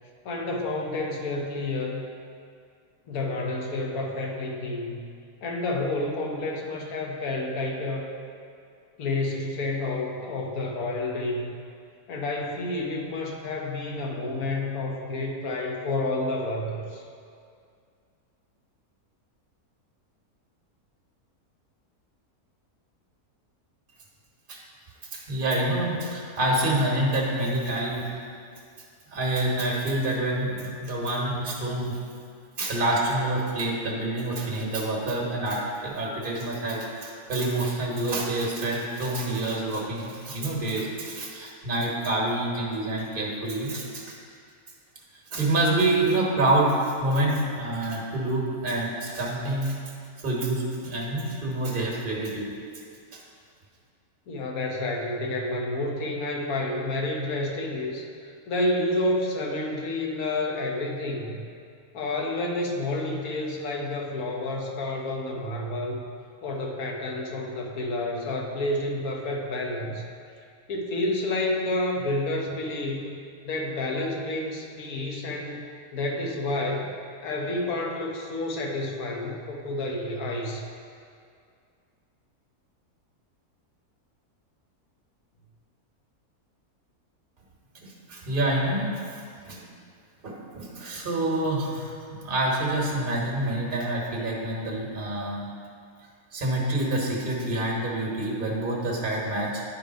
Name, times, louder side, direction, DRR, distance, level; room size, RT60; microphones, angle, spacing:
voice 1, 0.2-2.1 3.1-5.0 5.4-8.1 9.0-11.5 12.1-17.0 54.3-61.4 61.9-66.0 66.4-70.0 70.7-73.1 73.4-75.6 75.9-76.9 77.2-80.6, left 2 dB, 70° left, 0 dB, 1.4 m, -29 dB
voice 2, 25.1-28.0 29.1-32.0 32.6-44.1 45.3-49.8 50.2-52.5 87.7-89.6 90.2-95.5 96.3-99.6, right 1 dB, 35° right, -3 dB, 1.3 m, -27 dB
10.0 x 3.4 x 5.1 m, 2.3 s
omnidirectional pair, 1.6 m